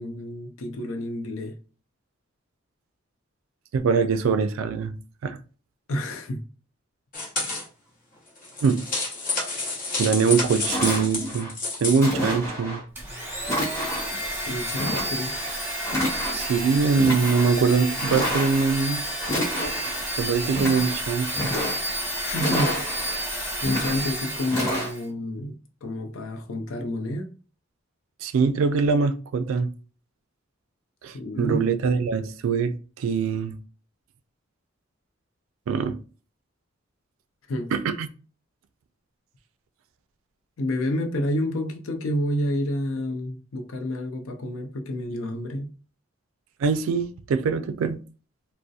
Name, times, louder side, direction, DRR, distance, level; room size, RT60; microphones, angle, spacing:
voice 1, 0.0-1.6 5.9-6.4 14.5-15.4 22.2-23.3 23.6-27.3 31.1-31.9 37.5-37.7 40.6-45.7, left 1 dB, 85° left, 0.5 m, -29 dB
voice 2, 3.7-4.9 5.2-5.4 8.6-8.8 10.0-11.5 11.8-12.8 16.3-19.0 20.2-21.3 28.2-29.7 31.0-33.6 35.7-36.0 37.7-38.1 46.6-48.0, right 5 dB, 80° right, 0.3 m, -23 dB
sound 1, 7.1-7.6 8.4-12.1, left 3 dB, 40° left, 0.8 m, -29 dB
sound 2, 10.2-10.3 10.6-11.5 12.0-12.8 13.4-14.2 14.8-15.5 15.8-16.6 16.9-17.5 18.0-18.8 19.2-20.0 20.4-21.0 21.3-22.0 22.3-23.2 23.6-24.1 24.5-24.9, equal, 15° left, 1.0 m, -29 dB
Domestic sounds home sounds, 13.0-25.1, right 1 dB, 10° right, 0.7 m, -31 dB
2.6 x 2.0 x 2.3 m
head